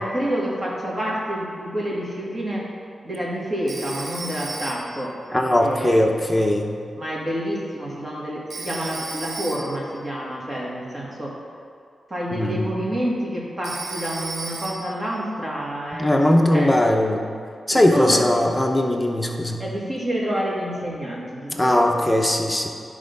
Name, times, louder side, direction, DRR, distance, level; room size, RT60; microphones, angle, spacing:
voice 1, 0.0-2.7 3.0-5.2 5.6-6.2 7.0-11.4 12.1-16.8 17.7-18.2 19.6-22.1, equal, 30° right, -4 dB, 1.9 m, -28 dB
Telephone, 3.7-5.1 8.5-9.9 13.6-15.1, right 3 dB, 50° right, 0.8 m, -34 dB
voice 2, 5.3-6.8 12.3-12.8 16.0-17.3 17.7-19.6 21.5-22.7, left 1 dB, 10° left, 1 dB, 0.8 m, -19 dB
11.0 x 3.7 x 5.4 m, 2.3 s
wide cardioid pair, 90°, 0 cm